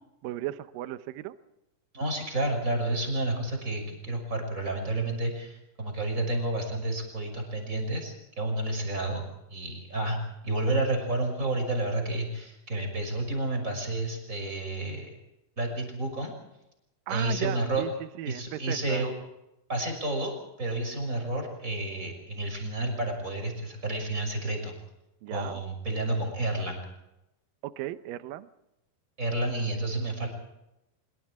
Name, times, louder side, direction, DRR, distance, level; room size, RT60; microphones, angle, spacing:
voice 1, 0.2-1.4 17.1-19.1 25.2-25.6 27.6-28.5, right 14 dB, 75° right, 12 dB, 2.2 m, -36 dB
voice 2, 1.9-9.2 9.5-15.1 15.6-16.3 17.1-17.8 18.3-19.1 19.7-24.7 25.3-26.8 29.2-30.3, right 2 dB, 20° right, 4 dB, 6.2 m, -30 dB
25.0 x 23.5 x 4.9 m, 0.89 s
omnidirectional pair, 4.7 m